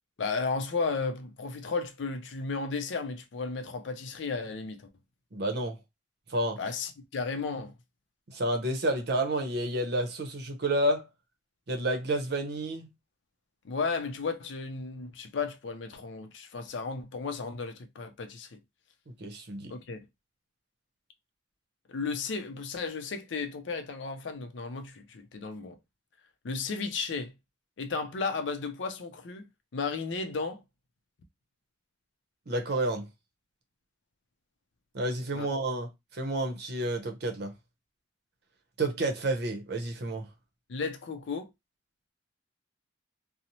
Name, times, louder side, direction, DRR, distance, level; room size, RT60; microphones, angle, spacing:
voice 1, 0.2-4.8 6.6-7.7 13.6-18.6 19.7-20.1 21.9-25.8 26.4-27.3 27.8-30.6 35.3-35.5 40.7-41.5, left 4 dB, 70° left, 0.5 m, -34 dB
voice 2, 5.3-5.8 6.3-6.6 8.3-11.1 11.7-12.9 19.1-19.7 32.5-33.1 34.9-37.5 38.8-40.3, right 1 dB, 60° right, 0.7 m, -30 dB
2.7 x 2.0 x 2.9 m
head